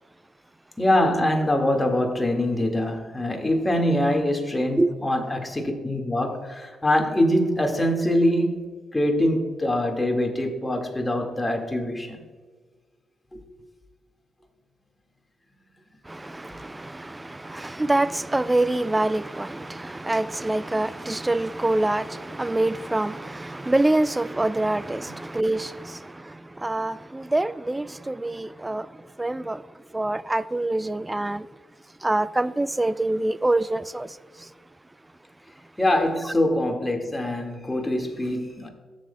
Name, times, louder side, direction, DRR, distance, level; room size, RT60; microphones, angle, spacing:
voice 1, 0.8-8.6 8.9-12.2 13.3-13.4 35.8-38.7, left 1 dB, 15° left, 1.9 m, -24 dB
voice 2, 16.0-31.5 32.0-34.5 36.2-36.3, right 2 dB, 20° right, 0.4 m, -26 dB
14.0 x 7.4 x 2.3 m
hypercardioid pair, 40°, 0 cm